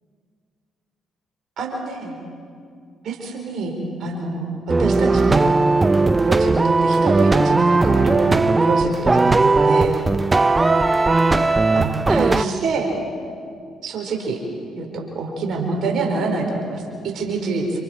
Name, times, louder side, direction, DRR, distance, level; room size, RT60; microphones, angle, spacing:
voice 1, 1.6-2.2 3.0-3.7 4.0-5.6 6.2-10.0 11.7-12.9 13.8-14.4 14.7-17.8, right 3 dB, 65° right, 1 dB, 4.4 m, -26 dB
sound 1, 4.7-12.4, right 3 dB, 25° right, 0.8 m, -17 dB
27.5 x 27.0 x 4.4 m, 2.3 s
hypercardioid pair, 50°, 0 cm